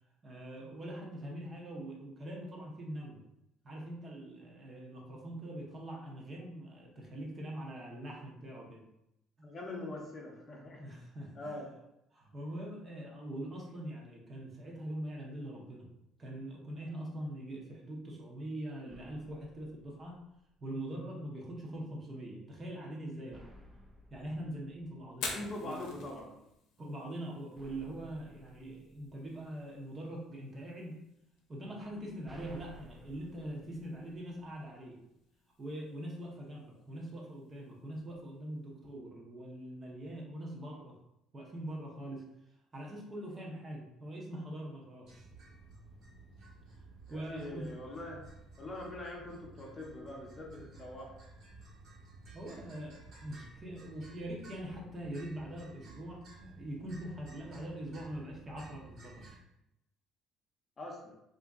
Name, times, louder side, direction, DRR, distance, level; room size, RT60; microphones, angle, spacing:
voice 1, 0.2-3.2 3.6-8.8 10.8-11.6 12.1-15.9 16.2-20.2 20.6-23.4 24.1-25.4 25.6-25.9 26.8-31.0 31.5-35.0 35.6-41.0 41.3-42.2 42.7-45.3 47.1-47.7 52.3-59.4, right 1 dB, 30° right, -2 dB, 0.8 m, -43 dB
voice 2, 9.4-10.8 11.3-11.7 25.2-26.3 47.1-48.2 48.6-51.1 60.8-61.1, left 2 dB, 30° left, -2 dB, 0.8 m, -43 dB
sound 1, 18.9-20.8 23.3-25.7 27.6-29.8 31.8-34.8, equal, 10° right, 0.4 m, -57 dB
Fire, 25.1-39.0, left 4 dB, 80° left, 0.7 m, -51 dB
sound 2, 45.0-59.4, right 3 dB, 55° right, 1.2 m, -54 dB
2.8 x 2.6 x 3.5 m, 0.84 s
cardioid pair, 120°, 0 cm